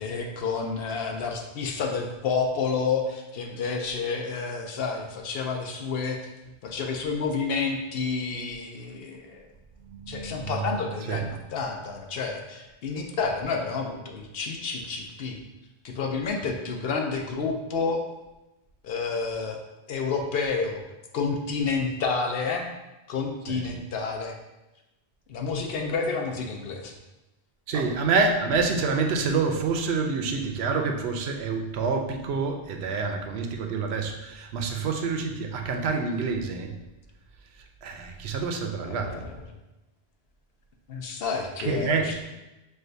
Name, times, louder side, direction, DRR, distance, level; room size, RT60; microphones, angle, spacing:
voice 1, 0.0-6.2 6.6-9.4 10.1-15.4 15.8-18.0 18.8-19.6 19.9-20.8 21.1-22.7 23.1-24.4 25.3-27.0 27.7-27.8 38.9-39.3 40.9-42.2, left 4 dB, 75° left, 3 dB, 0.8 m, -29 dB
voice 2, 9.8-10.7 11.1-11.3 23.5-23.7 27.7-36.8 37.8-39.3 41.6-42.1, right 4 dB, 90° right, 4 dB, 0.8 m, -27 dB
6.2 x 2.4 x 2.6 m, 1.0 s
omnidirectional pair, 1.0 m